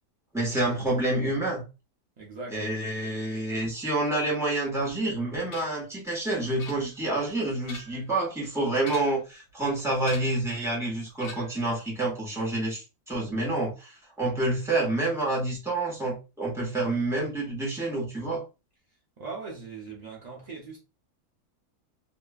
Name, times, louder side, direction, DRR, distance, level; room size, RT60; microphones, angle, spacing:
voice 1, 0.3-1.6 2.5-18.4, right 2 dB, ahead, 0.8 m, -28 dB
voice 2, 2.2-2.5 19.2-20.8, right 4 dB, 90° right, 0.3 m, -39 dB
sound 1, 5.5-5.9 6.6-7.2 7.5-8.1 8.8-9.3 10.0-10.5 11.2-11.7, left 3 dB, 70° left, 1.2 m, -44 dB
2.9 x 2.3 x 2.2 m
omnidirectional pair, 1.6 m